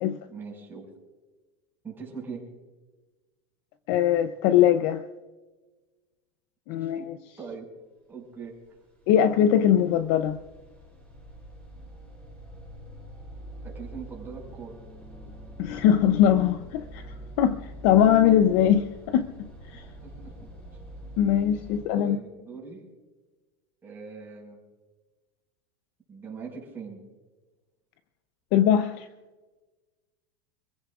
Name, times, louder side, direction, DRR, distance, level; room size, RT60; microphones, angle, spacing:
voice 1, 0.3-0.8 1.8-2.4 6.8-7.1 7.4-7.7 8.1-8.5 13.6-14.8 19.7-20.3 22.0-22.9 23.8-24.6 26.1-27.0, right 5 dB, 15° right, 5.4 m, -41 dB
voice 2, 3.9-5.0 6.7-7.2 9.1-10.4 15.6-17.0 17.4-19.8 21.2-22.2 28.5-29.1, left 10 dB, 50° left, 0.7 m, -21 dB
sound 1, 8.7-21.8, equal, 10° left, 5.9 m, -45 dB
27.5 x 16.0 x 2.5 m
supercardioid pair, 150°, 15 cm